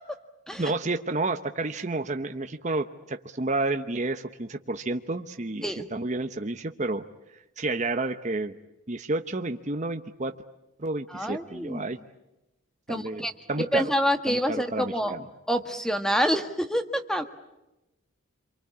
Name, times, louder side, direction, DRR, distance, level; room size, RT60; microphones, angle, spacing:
voice 1, 0.6-7.0 7.3-8.5 8.9-10.3 10.8-12.0 12.9-13.9 14.3-15.3, right 2 dB, 35° right, 6 dB, 0.9 m, -30 dB
voice 2, 11.1-11.9 12.9-13.3 13.6-15.1 15.5-17.2, equal, 5° left, 7 dB, 1.5 m, -27 dB
28.0 x 24.0 x 8.5 m, 0.95 s
head